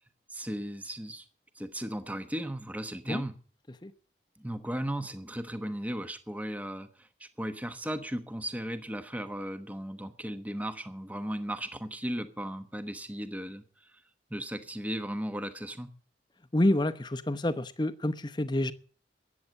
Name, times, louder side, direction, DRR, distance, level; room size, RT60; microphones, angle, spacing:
voice 1, 0.3-1.2 1.5-3.3 4.4-13.9 14.3-15.9, equal, 10° right, 1.0 m, -36 dB
voice 2, 16.5-18.7, left 1 dB, 25° left, 0.8 m, -28 dB
14.0 x 9.5 x 7.5 m
head